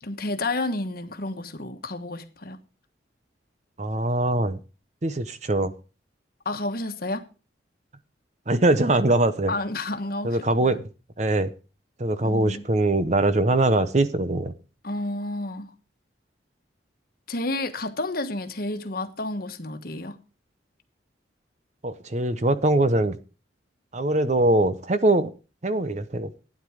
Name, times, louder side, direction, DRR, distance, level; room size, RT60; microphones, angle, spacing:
voice 1, 0.0-2.6 6.4-7.2 9.5-10.8 12.2-12.7 14.8-15.7 17.3-20.2, left 2 dB, 50° left, 1.3 m, -30 dB
voice 2, 3.8-4.6 5.0-5.7 8.5-9.5 10.2-10.9 11.2-11.5 12.0-14.5 21.8-23.2 23.9-25.3 25.6-26.3, right 2 dB, 40° right, 0.8 m, -22 dB
12.5 x 9.6 x 5.0 m
head